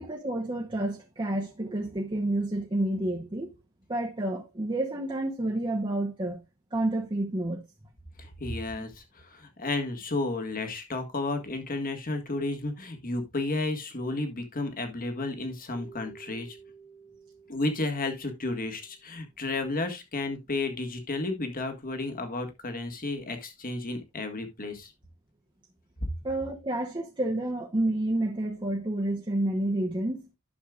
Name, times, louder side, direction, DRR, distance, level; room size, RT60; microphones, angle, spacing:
voice 1, 0.0-3.6 3.9-6.4 6.7-7.7 26.2-30.3, right 1 dB, 25° right, 0.9 m, -29 dB
voice 2, 8.2-16.6 17.5-24.9, left 2 dB, 40° left, 1.6 m, -32 dB
Keyboard (musical), 15.7-19.0, right 5 dB, 90° left, 4.9 m, -52 dB
11.5 x 6.5 x 2.4 m
head